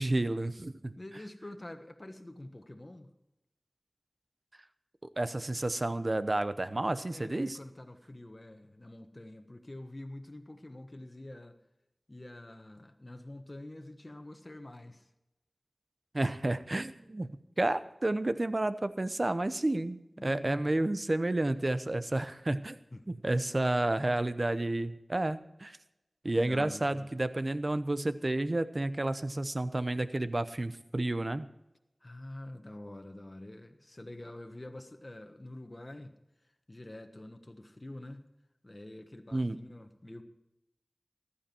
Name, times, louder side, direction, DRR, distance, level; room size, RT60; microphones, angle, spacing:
voice 1, 0.0-1.0 5.2-7.6 16.1-17.3 17.6-22.8 23.1-25.8 26.2-31.5 39.3-39.6, right 2 dB, 45° right, 12 dB, 0.8 m, -31 dB
voice 2, 1.0-3.1 7.1-11.6 12.1-15.1 20.2-20.9 22.9-23.0 26.4-27.1 32.0-36.2 36.7-38.3 38.6-40.2, left 1 dB, 40° left, 6 dB, 1.3 m, -46 dB
15.0 x 11.5 x 4.5 m, 0.89 s
wide cardioid pair, 45°, 0 cm